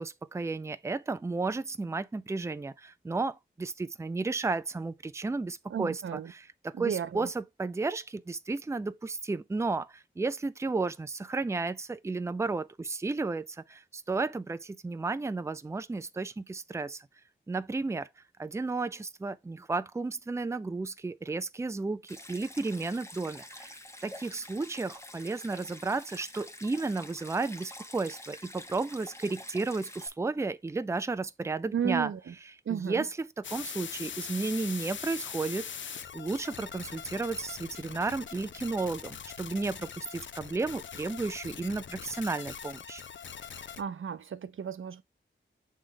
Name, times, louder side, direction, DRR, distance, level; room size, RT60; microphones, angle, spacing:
voice 1, 0.0-17.1 17.5-18.1 18.4-23.7 24.0-32.1 32.7-35.7 36.1-43.0, right 3 dB, 15° right, 0.4 m, -33 dB
voice 2, 5.7-6.3 6.7-7.3 31.7-32.3 32.7-33.0 43.8-45.0, right 8 dB, 90° right, 0.6 m, -33 dB
Stream, 22.1-30.1, left 1 dB, 15° left, 0.9 m, -47 dB
sound 1, 33.4-43.8, left 7 dB, 70° left, 0.5 m, -42 dB
7.3 x 3.3 x 3.8 m
wide cardioid pair, 115°, 20 cm